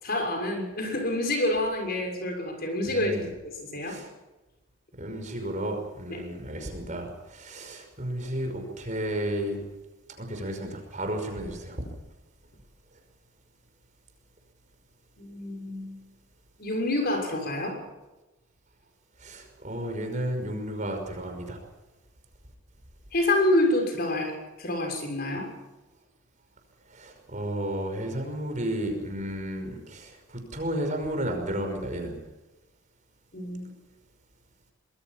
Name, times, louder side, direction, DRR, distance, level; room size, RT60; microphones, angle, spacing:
voice 1, 0.0-3.2 3.4-4.0 6.1-6.2 15.2-15.9 16.6-17.8 23.1-25.5 33.3-33.7, left 1 dB, 45° left, 4 dB, 6.5 m, -27 dB
voice 2, 2.9-3.3 3.9-4.1 5.0-9.6 10.2-11.8 19.2-21.6 26.9-32.1, right 1 dB, 35° right, 4 dB, 5.6 m, -33 dB
25.0 x 22.0 x 6.0 m, 1.1 s
head